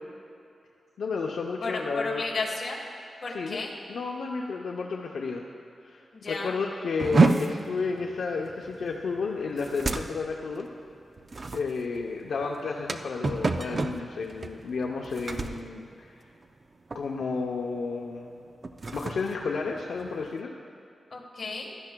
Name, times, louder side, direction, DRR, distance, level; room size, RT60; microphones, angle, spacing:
voice 1, 1.0-2.2 3.3-3.6 3.9-5.4 5.8-10.7 11.5-16.1 16.9-18.4 18.9-20.5, left 4 dB, 80° left, 0 dB, 0.6 m, -32 dB
voice 2, 1.6-2.8 3.2-3.7 6.1-6.6 21.1-21.7, left 3 dB, 50° left, -1 dB, 1.5 m, -33 dB
sound 1, 7.0-16.6 16.9-17.3 17.7-17.9 18.5-20.4, right 3 dB, 35° right, 0.4 m, -29 dB
16.0 x 12.0 x 2.2 m, 2.6 s
wide cardioid pair, 140°, 0 cm